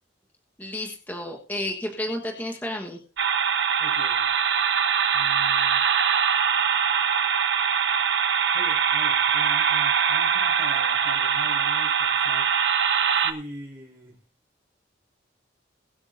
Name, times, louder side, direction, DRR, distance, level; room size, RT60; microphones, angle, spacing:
voice 1, 0.6-3.0, left 1 dB, 10° left, 1.3 m, -31 dB
sound 1, 3.2-13.3, right 7 dB, 75° right, 1.0 m, -22 dB
voice 2, 3.8-4.3 5.1-5.9 8.5-12.8 13.1-14.2, equal, 15° right, 4.3 m, -43 dB
21.5 x 8.6 x 2.6 m
head